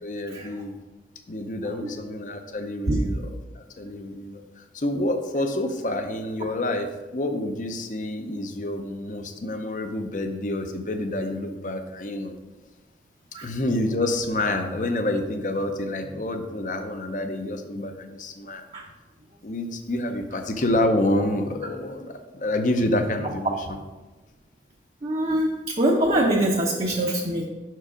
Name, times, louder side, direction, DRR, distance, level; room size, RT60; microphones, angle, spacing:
voice 1, 0.0-0.7 1.3-12.3 13.4-18.7 19.4-23.8, left 1 dB, 45° left, 6 dB, 0.6 m, -28 dB
voice 2, 25.0-25.5 25.8-27.5, right 1 dB, 35° right, -2 dB, 0.6 m, -23 dB
6.1 x 4.6 x 4.9 m, 1.2 s
head